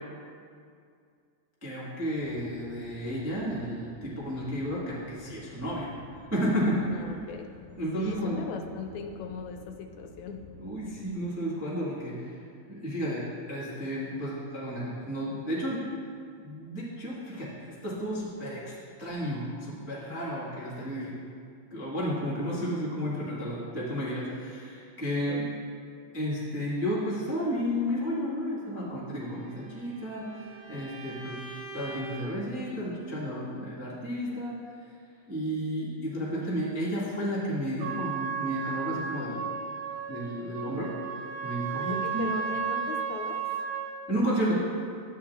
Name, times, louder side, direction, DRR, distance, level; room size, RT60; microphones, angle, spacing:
voice 1, 1.6-5.9 6.3-6.8 7.8-8.4 10.6-12.4 12.7-15.8 16.4-17.5 17.8-18.7 19.0-21.1 21.7-25.5 26.1-31.4 31.7-34.5 35.3-39.5 40.1-40.9 41.4-42.2 44.1-44.6, equal, 20° right, -9 dB, 0.4 m, -32 dB
sound 1, 2.2-11.1, left 3 dB, 40° left, 2.1 m, -52 dB
voice 2, 6.8-7.5 8.0-10.5 25.3-25.7 41.9-43.5, left 6 dB, 80° left, 4 dB, 1.9 m, -39 dB
Bowed string instrument, 29.3-32.3, right 2 dB, 65° right, 1.3 m, -44 dB
Trumpet, 37.8-44.0, right 7 dB, 90° right, 2.7 m, -34 dB
11.5 x 8.9 x 2.3 m, 2.2 s
omnidirectional pair, 3.5 m